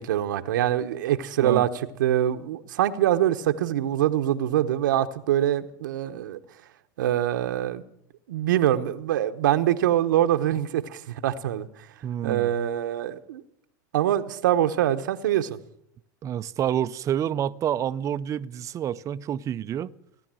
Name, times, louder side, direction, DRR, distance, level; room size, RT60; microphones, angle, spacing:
voice 1, 0.0-1.7 2.0-6.4 7.0-7.8 8.3-11.7 12.2-13.4 13.9-15.6, right 12 dB, 85° right, 1.0 m, -24 dB
voice 2, 12.0-12.5 16.2-19.9, right 10 dB, 30° right, 0.6 m, -28 dB
17.0 x 11.0 x 7.6 m
supercardioid pair, 115°, 10 cm